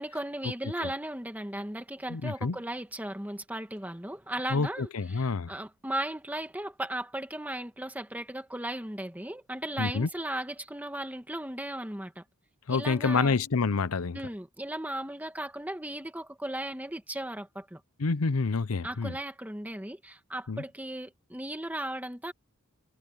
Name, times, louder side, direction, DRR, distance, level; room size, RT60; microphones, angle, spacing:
voice 1, 0.0-12.2 12.7-13.4 14.1-17.8 18.8-22.3, right 1 dB, 5° right, 1.8 m, -36 dB
voice 2, 2.1-2.6 4.5-5.5 9.8-10.1 12.7-14.2 18.0-19.2 20.5-20.6, left 4 dB, 85° left, 0.7 m, -28 dB
head